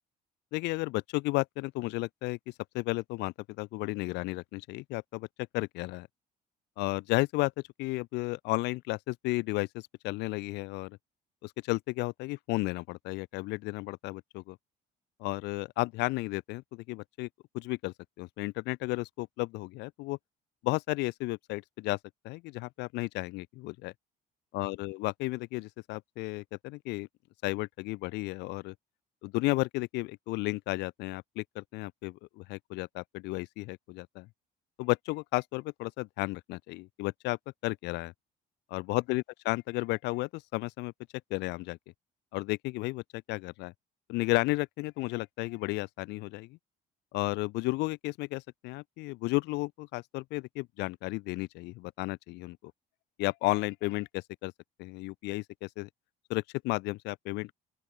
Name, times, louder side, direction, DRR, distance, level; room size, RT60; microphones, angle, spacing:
voice 1, 0.5-2.4 2.7-5.3 5.5-6.1 6.8-7.5 7.8-11.0 11.4-14.6 15.2-17.3 17.5-20.2 20.6-22.0 22.2-23.9 24.5-27.1 27.4-28.7 29.2-34.3 34.8-38.1 38.7-40.9 41.3-41.8 42.3-43.7 44.1-46.6 47.1-52.7 53.2-54.5 54.8-55.9 56.3-57.5, left 22 dB, 90° left, 0.7 m, -33 dB
open air
cardioid pair, 110°, 17 cm